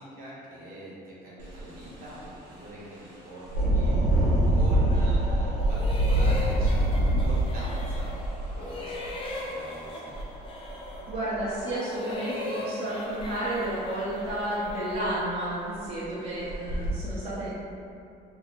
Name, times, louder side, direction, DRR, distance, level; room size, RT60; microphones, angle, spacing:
voice 1, 0.0-10.1, right 1 dB, 60° right, -8 dB, 1.2 m, -42 dB
Engine, 1.4-1.6 2.1-2.2 3.5-9.2 10.1-10.2 10.7-11.4 13.2-13.3 13.7-13.8 14.3-14.4 14.7-15.2 15.7-15.9 16.5-16.9, right 1 dB, 85° right, 0.9 m, -25 dB
sound 1, 3.6-15.8, left 1 dB, 55° left, 1.2 m, -42 dB
sound 2, 5.6-8.3 8.6-11.1 11.6-15.3, left 1 dB, 30° left, 0.5 m, -39 dB
voice 2, 11.1-17.5, right 1 dB, 35° right, -10 dB, 0.8 m, -31 dB
2.7 x 2.3 x 4.2 m, 2.7 s
cardioid pair, 110°, 17 cm